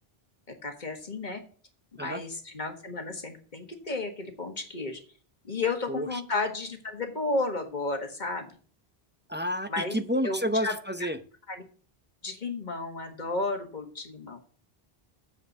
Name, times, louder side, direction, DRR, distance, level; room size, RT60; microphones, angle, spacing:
voice 1, 0.5-1.4 2.0-5.0 5.4-8.5 9.7-10.0 10.2-11.1 11.5-11.6 12.2-14.4, left 3 dB, 45° left, 6 dB, 1.7 m, -33 dB
voice 2, 5.9-6.2 9.3-11.2, equal, 15° right, 9 dB, 0.6 m, -30 dB
7.3 x 6.7 x 6.7 m, 0.42 s
omnidirectional pair, 1.0 m